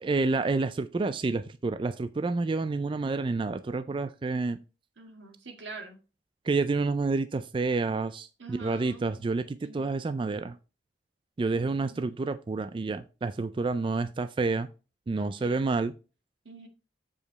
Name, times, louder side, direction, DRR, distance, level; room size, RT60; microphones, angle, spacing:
voice 1, 0.0-4.6 6.4-10.6 11.4-14.7 15.1-15.9, right 3 dB, 30° right, 11 dB, 0.3 m, -29 dB
voice 2, 5.0-6.0 8.4-9.0 9.6-9.9 15.2-15.6 16.5-16.7, right 3 dB, 90° right, 4 dB, 1.8 m, -45 dB
7.3 x 5.0 x 3.9 m, 0.32 s
head